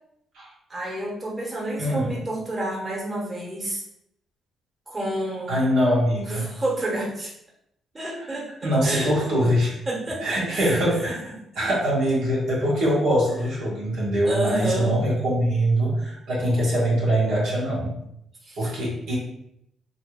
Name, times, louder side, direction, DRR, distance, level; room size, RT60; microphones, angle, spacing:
voice 1, 0.7-3.8 4.9-5.6 6.3-7.3 7.9-9.1 9.9-10.8 14.2-15.0 18.4-18.8, right 1 dB, 25° right, -4 dB, 1.1 m, -29 dB
voice 2, 5.5-6.5 8.6-9.8 10.2-11.2 11.6-17.9 18.6-19.2, equal, 80° right, -6 dB, 1.2 m, -23 dB
2.8 x 2.5 x 3.0 m, 0.76 s
cardioid pair, 90°, 0 cm